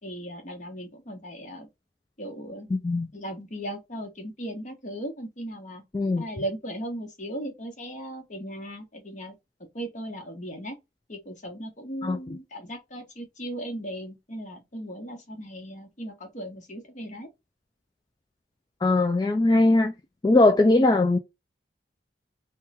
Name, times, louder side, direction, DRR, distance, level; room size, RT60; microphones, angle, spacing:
voice 1, 0.0-1.7 2.2-2.7 3.1-5.8 6.2-9.3 9.7-10.8 11.1-17.3, right 1 dB, 45° left, 1.2 m, -37 dB
voice 2, 2.7-3.1 5.9-6.2 12.0-12.2 18.8-19.9 20.2-21.2, left 2 dB, 25° left, 0.3 m, -20 dB
3.6 x 2.2 x 4.1 m
head